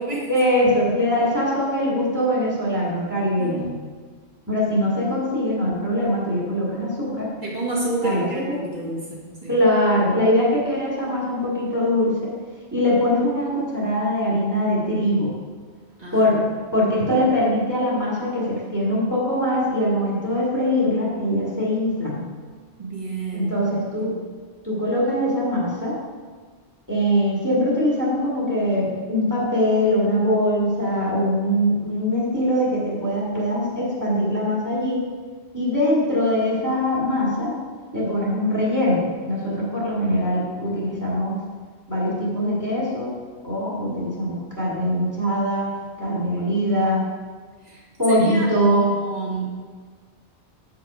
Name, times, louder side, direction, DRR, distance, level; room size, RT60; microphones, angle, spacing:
voice 1, 0.3-3.7 4.5-7.3 8.0-8.4 9.5-12.3 12.7-15.3 16.1-16.4 16.7-22.2 23.3-24.2 24.6-26.0 26.9-35.0 35.5-37.5 37.9-41.4 41.9-43.1 43.4-45.7 46.0-47.1 48.0-48.9, equal, 15° right, -7 dB, 1.8 m, -22 dB
voice 2, 3.4-3.8 7.4-9.5 16.0-16.2 22.8-23.6 24.0-24.2 43.7-44.0 46.3-46.5 47.7-47.8 48.1-49.5, right 3 dB, 40° right, -4 dB, 1.7 m, -30 dB
7.8 x 4.7 x 4.8 m, 1.5 s
omnidirectional pair, 1.1 m